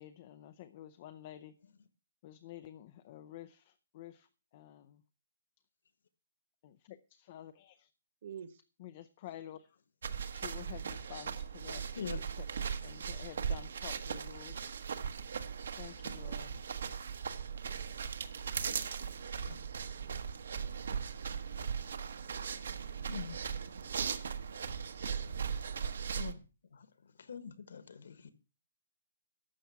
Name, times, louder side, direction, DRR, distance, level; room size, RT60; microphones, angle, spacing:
voice 1, 0.0-1.6 2.2-4.3 4.5-5.0 6.6-7.9 8.8-9.7 10.3-14.6 15.8-16.6, left 12 dB, 25° left, 11 dB, 0.5 m, -50 dB
voice 2, 8.2-8.6 19.6-19.7 20.0-20.1, right 8 dB, 35° right, 13 dB, 0.9 m, -51 dB
sound 1, 10.0-26.3, right 7 dB, 50° right, 1.2 m, -38 dB
voice 3, 23.1-23.4 26.2-26.4 27.3-28.3, left 6 dB, 55° left, 13 dB, 1.4 m, -43 dB
12.5 x 7.4 x 5.7 m, 0.34 s
hypercardioid pair, 180°, 0 cm